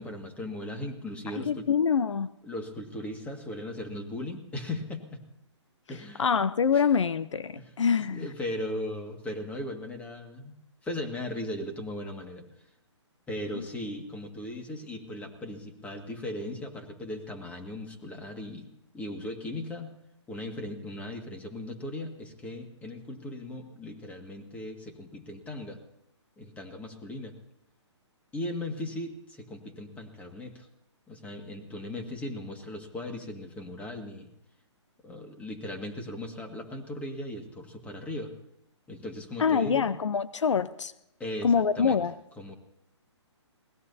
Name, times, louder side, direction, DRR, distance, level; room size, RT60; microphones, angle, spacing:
voice 1, 0.0-1.7 2.4-5.2 5.9-6.3 6.7-6.9 7.5-7.7 8.1-10.6 10.8-12.5 13.3-18.7 18.9-19.9 20.3-25.8 26.4-27.3 28.3-30.7 31.1-34.3 35.0-38.3 38.9-39.9 41.2-42.0 42.4-42.5, left 1 dB, 10° left, 4 dB, 2.0 m, -38 dB
voice 2, 1.5-2.3 6.2-8.3 13.5-13.6 39.4-40.9 41.4-42.1, left 6 dB, 75° left, 14 dB, 0.9 m, -25 dB
27.0 x 19.0 x 2.8 m, 0.80 s
hypercardioid pair, 150°, 15 cm